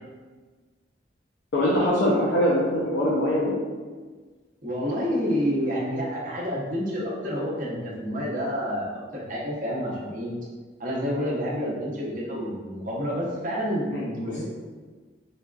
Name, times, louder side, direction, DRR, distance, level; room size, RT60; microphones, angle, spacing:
voice 1, 1.5-3.5 13.9-14.4, equal, 75° left, -6 dB, 0.6 m, -23 dB
voice 2, 4.6-10.3 10.8-14.4, equal, 45° right, -5 dB, 0.8 m, -29 dB
4.1 x 2.3 x 2.3 m, 1.4 s
head